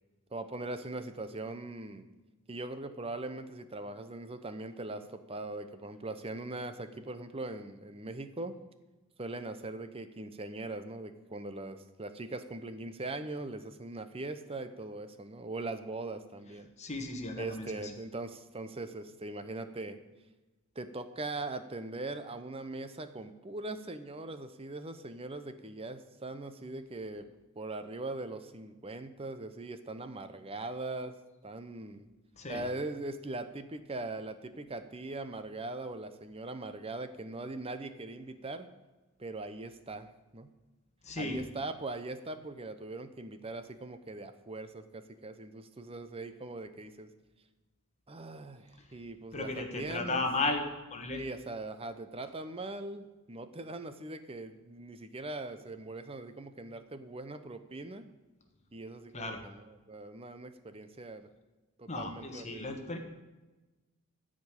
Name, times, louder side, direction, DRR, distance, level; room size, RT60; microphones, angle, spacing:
voice 1, 0.3-2.1 2.5-8.6 9.2-16.7 17.4-20.0 20.7-27.3 27.6-31.2 31.4-32.1 32.5-38.7 39.2-40.5 41.2-47.1 48.1-50.2 51.1-58.1 58.7-61.3 61.8-62.8, right 2 dB, 25° right, 10 dB, 0.8 m, -41 dB
voice 2, 16.8-17.7 32.4-32.6 41.0-41.4 49.3-50.6 50.9-51.2 59.1-59.4 61.9-63.0, left 2 dB, 30° left, 3 dB, 1.5 m, -34 dB
13.5 x 5.2 x 8.7 m, 1.1 s
head